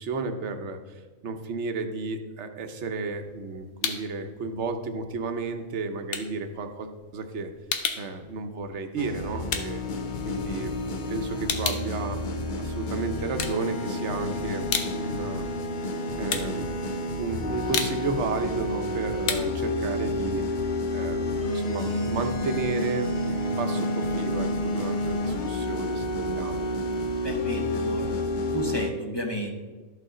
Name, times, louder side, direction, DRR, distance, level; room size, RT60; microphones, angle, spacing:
voice 1, 0.0-7.5 8.0-9.8 10.2-12.2 12.6-14.7 15.0-15.4 16.2-16.7 17.2-20.7 20.9-26.7, right 3 dB, 60° right, 6 dB, 1.0 m, -33 dB
sound 1, 3.0-4.2 4.5-10.8 11.1-12.9 13.2-14.1 14.5-21.2, left 6 dB, 80° left, 1.2 m, -34 dB
sound 2, 9.0-28.9, left 1 dB, 50° left, 0.6 m, -29 dB
voice 2, 27.2-28.1 28.5-29.5, right 1 dB, 20° left, 1 dB, 0.9 m, -32 dB
13.0 x 5.4 x 3.7 m, 1.3 s
omnidirectional pair, 1.4 m